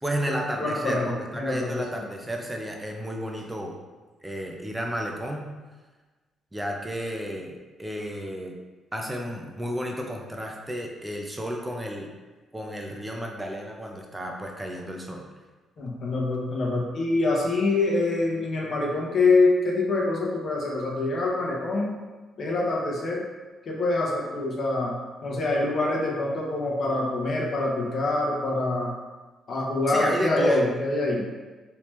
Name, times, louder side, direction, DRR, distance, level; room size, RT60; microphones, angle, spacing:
voice 1, 0.0-3.7 4.2-5.5 6.5-8.5 8.9-12.1 12.5-15.3 29.9-30.7, equal, 10° right, 1 dB, 0.6 m, -32 dB
voice 2, 0.6-1.8 15.8-21.9 22.4-23.2 23.7-24.9 25.2-28.9 29.5-31.2, left 2 dB, 50° left, -2 dB, 0.9 m, -25 dB
3.3 x 2.8 x 3.1 m, 1.3 s
cardioid pair, 90°, 0 cm